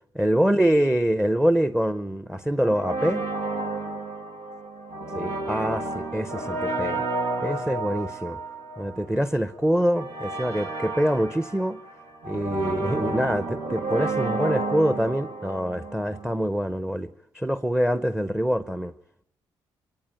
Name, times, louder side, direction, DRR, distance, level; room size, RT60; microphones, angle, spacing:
voice 1, 0.1-3.2 5.1-7.0 7.4-8.4 8.8-11.8 12.2-18.9, equal, 5° right, 0.8 m, -25 dB
sound 1, 2.6-16.4, right 2 dB, 85° right, 2.4 m, -31 dB
25.0 x 15.5 x 9.1 m
supercardioid pair, 55°, 11 cm